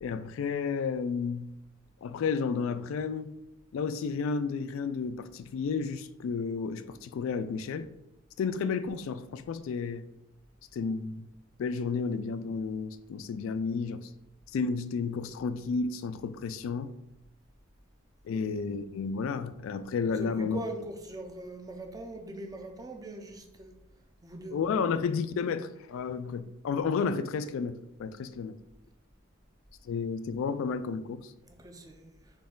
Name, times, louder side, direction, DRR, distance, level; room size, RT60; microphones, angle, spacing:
voice 1, 0.0-1.5 2.0-3.3 3.7-7.9 8.4-10.0 10.7-11.3 11.6-14.1 14.5-16.9 18.2-20.6 24.5-28.6 29.8-31.3, left 5 dB, 70° left, 0.3 m, -32 dB
voice 2, 20.0-23.7 24.2-24.6 31.5-32.2, right 1 dB, 20° right, 0.5 m, -42 dB
4.2 x 3.3 x 3.7 m
head